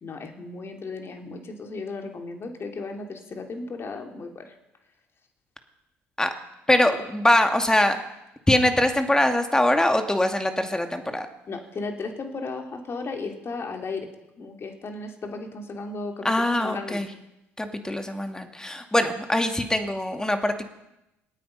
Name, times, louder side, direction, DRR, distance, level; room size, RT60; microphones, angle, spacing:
voice 1, 0.0-4.5 11.5-14.1 14.4-17.0, left 3 dB, 40° left, 3 dB, 3.1 m, -35 dB
voice 2, 6.7-8.0 8.5-11.3 16.2-17.1 17.6-20.7, left 1 dB, 10° left, 6 dB, 2.3 m, -23 dB
27.5 x 9.2 x 5.5 m, 0.90 s
hypercardioid pair, 60°, 6 cm